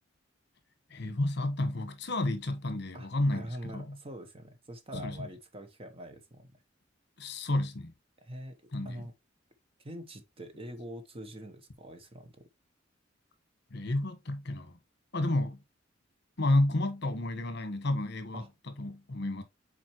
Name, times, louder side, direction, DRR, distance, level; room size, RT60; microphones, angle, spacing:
voice 1, 0.9-4.0 4.9-5.3 7.2-7.9 8.7-9.1 13.7-14.7 15.1-15.6 16.4-19.4, left 1 dB, 60° left, 1.3 m, -31 dB
voice 2, 2.9-6.5 8.2-8.5 8.8-9.1 9.8-12.4 18.3-18.5, equal, 30° right, 1.0 m, -44 dB
7.3 x 4.3 x 3.0 m
head